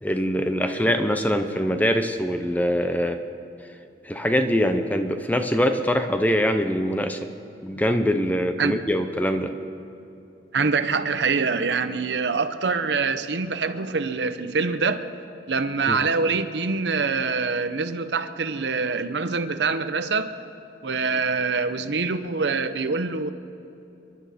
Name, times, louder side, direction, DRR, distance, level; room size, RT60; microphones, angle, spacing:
voice 1, 0.0-3.2 4.0-7.3 7.6-9.5 15.9-16.0, equal, 10° left, 7 dB, 0.8 m, -23 dB
voice 2, 10.5-15.1 15.5-20.3 20.8-23.3, right 4 dB, 80° right, 10 dB, 0.8 m, -25 dB
28.5 x 11.5 x 4.3 m, 2.8 s
head